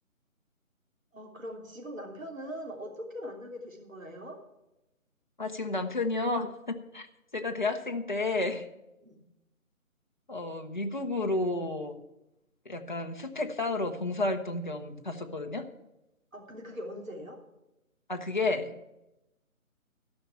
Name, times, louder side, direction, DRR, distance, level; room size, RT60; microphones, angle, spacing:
voice 1, 1.1-4.4 9.0-9.2 16.3-17.4, equal, 65° right, 0 dB, 3.4 m, -41 dB
voice 2, 5.4-7.1 7.3-8.7 10.3-12.0 12.7-15.7 18.1-18.8, left 2 dB, 35° left, 3 dB, 0.8 m, -31 dB
13.0 x 5.7 x 8.5 m, 0.92 s
figure-of-eight pair, 180°, 42 cm